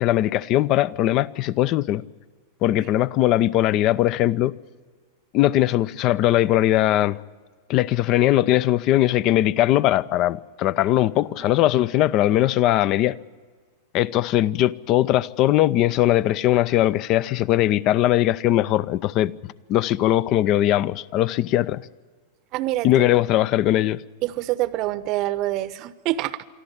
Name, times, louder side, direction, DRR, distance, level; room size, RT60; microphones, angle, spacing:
voice 1, 0.0-2.0 2.6-4.5 5.3-7.2 7.7-13.2 13.9-19.3 19.7-21.8 22.8-24.0, left 14 dB, 40° left, 0.5 m, -20 dB
voice 2, 22.5-23.1 24.2-26.5, right 15 dB, 40° right, 0.8 m, -26 dB
24.5 x 14.0 x 9.6 m
figure-of-eight pair, 90°, 0 cm